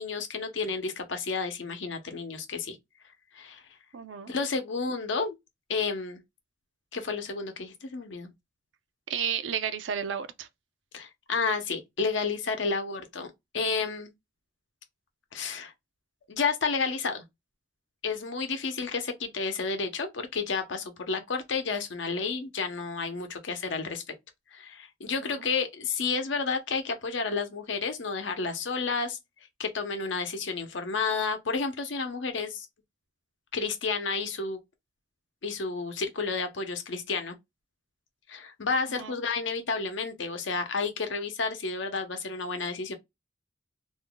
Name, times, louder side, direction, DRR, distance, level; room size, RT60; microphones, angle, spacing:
voice 1, 0.0-2.8 3.3-3.6 4.3-5.4 5.7-6.2 6.9-8.3 10.9-14.1 15.3-15.7 16.3-17.2 18.0-24.0 24.5-29.2 29.6-32.7 33.5-34.6 35.4-37.3 38.3-42.9, left 4 dB, 80° left, 0.7 m, -31 dB
voice 2, 3.9-4.3 9.1-10.5 25.2-25.5 38.9-39.2, right 7 dB, 80° right, 0.4 m, -33 dB
2.5 x 2.2 x 3.8 m
head